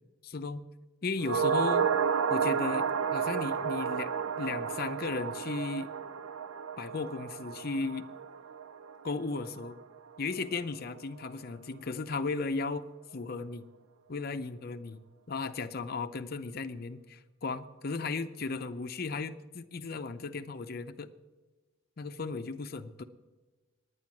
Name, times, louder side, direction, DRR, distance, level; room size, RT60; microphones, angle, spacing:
voice 1, 0.2-0.6 1.0-1.9 2.3-4.1 4.4-5.9 6.8-8.1 9.0-9.8 10.2-12.8 13.1-13.7 14.1-15.0 15.3-21.1 22.0-23.0, left 4 dB, 45° left, 9 dB, 0.6 m, -35 dB
sound 1, 1.2-9.7 10.0-10.1, right 6 dB, 90° right, 0.5 m, -31 dB
sound 2, 6.8-15.2 16.2-17.1, right 9 dB, 20° right, 4.1 m, -68 dB
9.8 x 9.3 x 7.2 m, 1.2 s
head